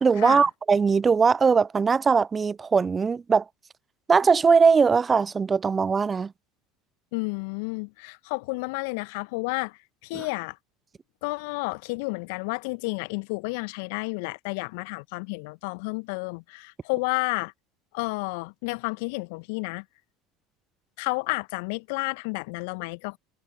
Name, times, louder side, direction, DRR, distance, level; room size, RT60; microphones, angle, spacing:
voice 1, 0.0-3.4 4.1-6.3 10.1-10.3, right 5 dB, 25° right, 0.7 m, -20 dB
voice 2, 7.1-10.6 11.2-17.5 17.9-19.8 21.0-23.2, left 29 dB, 65° left, 1.4 m, -31 dB
figure-of-eight pair, 70°, 0 cm